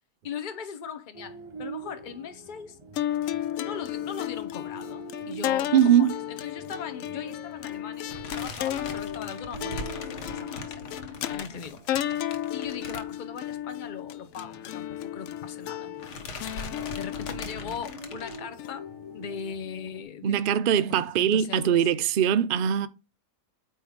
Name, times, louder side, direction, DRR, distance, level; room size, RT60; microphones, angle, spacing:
voice 1, 0.2-2.8 3.6-8.1 8.3-10.9 11.3-11.8 12.5-15.9 16.9-18.9 19.1-21.8, left 7 dB, 35° left, 0.9 m, -39 dB
sound 1, 1.1-20.0, right 2 dB, 20° right, 1.0 m, -46 dB
sound 2, 3.0-19.4, left 12 dB, 65° left, 0.8 m, -34 dB
voice 2, 5.7-6.1 20.2-22.9, right 9 dB, 65° right, 0.5 m, -22 dB
sound 3, 8.1-13.7 13.9-14.1 14.4-14.5 15.4-15.7 16.0-18.4, left 3 dB, 90° left, 1.8 m, -40 dB
8.8 x 3.2 x 5.0 m
omnidirectional pair, 1.7 m